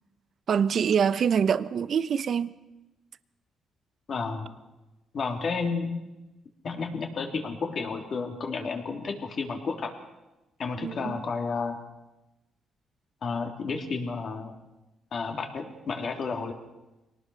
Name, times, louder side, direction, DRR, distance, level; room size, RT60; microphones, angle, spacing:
voice 1, 0.5-2.5 10.8-11.1, right 7 dB, 55° right, 0.8 m, -25 dB
voice 2, 4.1-4.5 5.1-5.9 6.6-9.9 10.6-11.8 13.2-14.5 15.1-16.5, left 4 dB, 50° left, 3.4 m, -31 dB
24.0 x 19.0 x 6.5 m
cardioid pair, 90°, 0 cm